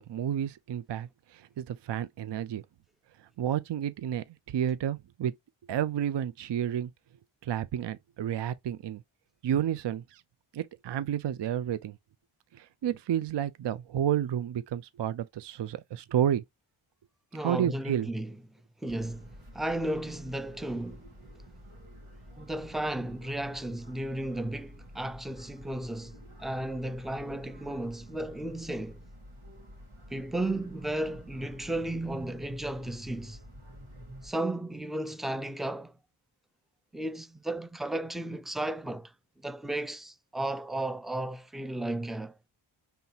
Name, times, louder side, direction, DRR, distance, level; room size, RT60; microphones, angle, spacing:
voice 1, 0.0-2.6 3.2-5.3 5.7-6.9 7.4-9.0 9.4-10.2 10.5-12.0 12.5-16.4 17.4-18.1, right 10 dB, 60° right, 0.5 m, -31 dB
voice 2, 17.3-18.4 18.8-21.1 22.4-29.0 30.1-33.4 34.2-36.0 36.9-39.1 39.4-42.4, right 1 dB, ahead, 0.3 m, -34 dB
sound 1, 18.9-34.3, equal, 85° right, 2.0 m, -49 dB
5.5 x 3.4 x 2.8 m
wide cardioid pair, 85°, 49 cm